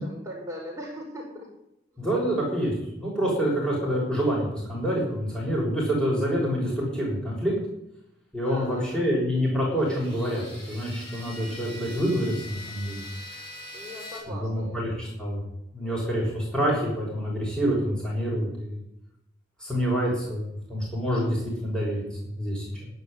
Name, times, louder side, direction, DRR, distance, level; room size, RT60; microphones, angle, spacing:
voice 1, 0.0-1.5 1.9-2.2 8.4-9.1 13.7-14.9 15.8-16.2, equal, 15° right, -3 dB, 5.2 m, -40 dB
voice 2, 2.0-7.5 8.3-13.0 14.3-15.4 15.7-18.8 19.6-22.0 22.3-22.9, equal, 5° left, -5 dB, 6.2 m, -27 dB
sound 1, 9.8-14.2, left 1 dB, 25° left, 7.5 m, -42 dB
11.5 x 10.0 x 10.0 m, 0.83 s
head